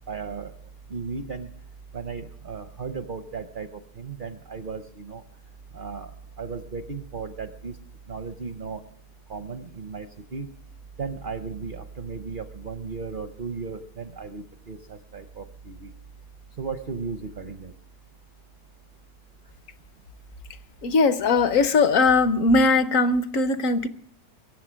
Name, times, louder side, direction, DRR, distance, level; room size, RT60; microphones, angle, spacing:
voice 1, 0.1-0.5 0.9-1.5 1.9-5.2 5.7-6.1 6.4-7.8 8.1-8.8 9.3-10.5 11.0-15.9 16.6-17.7, right 5 dB, 50° right, 9 dB, 0.6 m, -35 dB
voice 2, 20.8-23.9, left 3 dB, 60° left, 12 dB, 1.1 m, -20 dB
22.5 x 7.8 x 6.2 m, 0.62 s
omnidirectional pair, 1.7 m